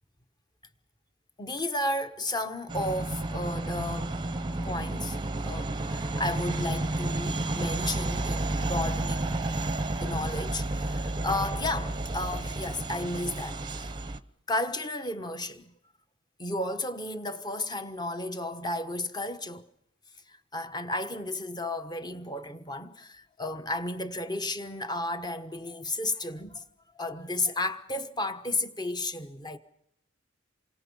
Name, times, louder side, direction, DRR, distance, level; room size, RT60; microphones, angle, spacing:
voice 1, 1.4-4.2 4.5-5.2 5.4-9.4 10.0-13.9 14.5-15.7 16.4-19.6 20.3-26.6 27.0-29.6, left 2 dB, 20° left, 1.2 m, -33 dB
sound 1, 2.7-14.2, right 2 dB, 20° right, 0.8 m, -31 dB
28.0 x 25.0 x 5.5 m
head